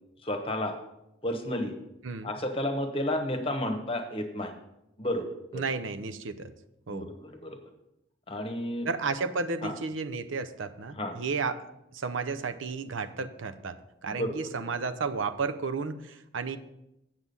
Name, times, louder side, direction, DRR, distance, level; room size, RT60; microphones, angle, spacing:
voice 1, 0.2-0.7 1.2-1.7 2.2-4.5 5.0-5.3 5.5-5.7 6.9-7.6 8.3-8.9 9.6-9.7 10.9-11.2 14.1-14.4, left 1 dB, 30° left, 5 dB, 1.1 m, -31 dB
voice 2, 5.5-6.5 6.9-7.1 8.8-16.6, right 4 dB, 80° right, 10 dB, 0.7 m, -33 dB
8.2 x 7.4 x 5.4 m, 0.87 s
head